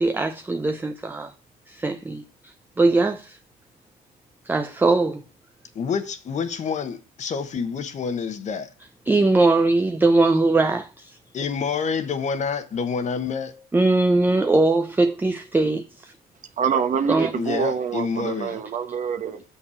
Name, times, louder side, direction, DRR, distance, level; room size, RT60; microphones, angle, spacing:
voice 1, 0.0-1.3 1.7-3.4 4.5-5.2 9.1-11.2 13.7-16.1 17.1-17.3, right 2 dB, 10° right, 0.5 m, -21 dB
voice 2, 5.7-8.7 11.3-13.7 17.3-18.6, left 6 dB, 45° left, 1.1 m, -28 dB
voice 3, 16.6-19.4, right 7 dB, 45° right, 1.1 m, -26 dB
6.5 x 5.6 x 6.9 m
cardioid pair, 110°, 17 cm